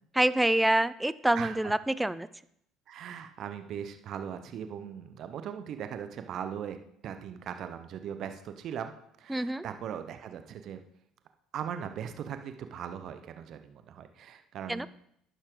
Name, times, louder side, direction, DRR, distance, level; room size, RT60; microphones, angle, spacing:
voice 1, 0.2-2.3 9.3-9.7 14.7-14.9, right 1 dB, 10° right, 17 dB, 0.5 m, -26 dB
voice 2, 1.3-1.7 2.9-6.8 7.0-8.9 9.2-10.8 11.5-14.9, right 8 dB, 55° right, 8 dB, 0.9 m, -39 dB
11.0 x 9.3 x 3.9 m, 0.72 s
hypercardioid pair, 65°, 0 cm